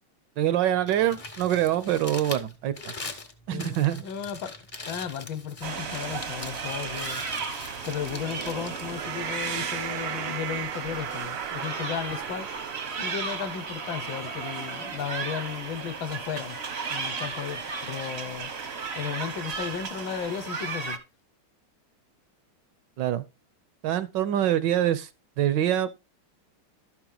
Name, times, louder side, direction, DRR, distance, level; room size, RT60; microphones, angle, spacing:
voice 1, 0.4-2.9 3.5-4.0 23.0-23.2 23.8-25.1 25.4-25.9, right 11 dB, 70° right, 1.1 m, -25 dB
Crumpling crinkling, 0.7-9.8, left 3 dB, 40° left, 0.4 m, -42 dB
voice 2, 3.5-4.6 4.9-7.3 7.8-12.5 13.0-16.6 16.9-18.5 19.0-21.0, left 8 dB, 65° left, 1.6 m, -34 dB
sound 1, 5.6-21.0, right 5 dB, 55° right, 0.7 m, -35 dB
sound 2, 7.7-14.3, right 11 dB, 90° right, 1.7 m, -38 dB
12.0 x 6.0 x 3.8 m
omnidirectional pair, 2.4 m